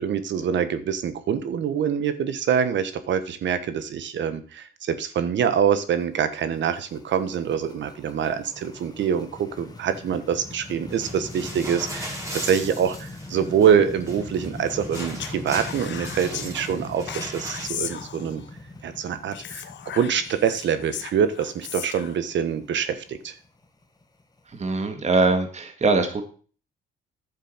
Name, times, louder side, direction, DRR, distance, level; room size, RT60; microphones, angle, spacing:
voice 1, 0.0-18.4 18.8-19.6 19.9-23.3, right 8 dB, 65° right, 12 dB, 1.4 m, -25 dB
sound 1, 5.8-24.6, left 2 dB, 20° left, 1.7 m, -41 dB
sound 2, 10.9-17.7, right 1 dB, 15° right, 3.9 m, -38 dB
Speech, 14.9-16.5 17.1-18.5 19.3-22.2, left 9 dB, 65° left, 1.1 m, -37 dB
voice 2, 24.5-26.2, right 3 dB, 35° right, 6 dB, 1.9 m, -22 dB
11.0 x 7.5 x 5.7 m, 0.41 s
cardioid pair, 90°, 20 cm